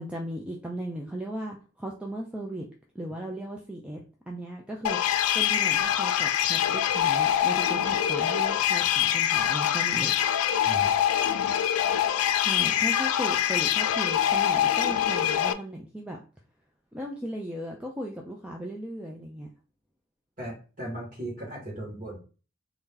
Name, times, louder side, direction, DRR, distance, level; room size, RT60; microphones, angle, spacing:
voice 1, 0.0-2.7 2.9-4.0 4.3-5.0 5.3-10.1 12.4-16.2 16.9-19.5, right 1 dB, 5° right, 0 dB, 0.4 m, -36 dB
sound 1, 4.8-15.5, left 10 dB, 90° left, 0.4 m, -24 dB
voice 2, 20.4-22.2, right 1 dB, 40° right, -3 dB, 2.1 m, -37 dB
3.5 x 2.8 x 3.8 m, 0.35 s
head